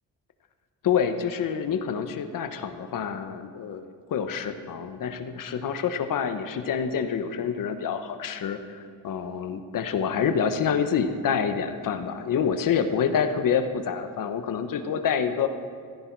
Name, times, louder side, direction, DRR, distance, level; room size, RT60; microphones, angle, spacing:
voice 1, 0.8-8.8 9.0-15.5, left 7 dB, 70° left, 8 dB, 1.2 m, -27 dB
15.5 x 14.5 x 4.7 m, 2.1 s
cardioid pair, 140°, 34 cm